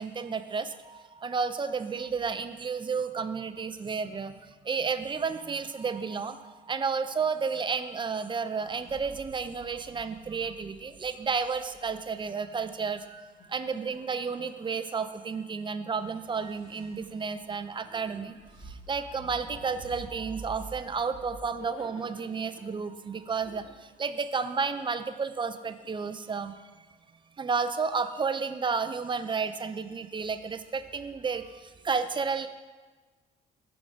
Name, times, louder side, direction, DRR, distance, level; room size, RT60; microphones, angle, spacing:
voice 1, 0.0-4.3 4.6-18.4 18.6-26.5 27.4-32.5, right 5 dB, 25° right, 11 dB, 0.4 m, -32 dB
sound 1, 8.6-12.7 16.0-21.3, right 2 dB, 15° left, 2.1 m, -49 dB
sound 2, 10.1-10.7 13.2-16.0 16.7-16.9 20.7-23.2 23.4-24.1 24.6-25.0 25.6-26.3, left 3 dB, 80° left, 1.2 m, -54 dB
5.9 x 4.8 x 5.1 m, 1.3 s
cardioid pair, 90°, 20 cm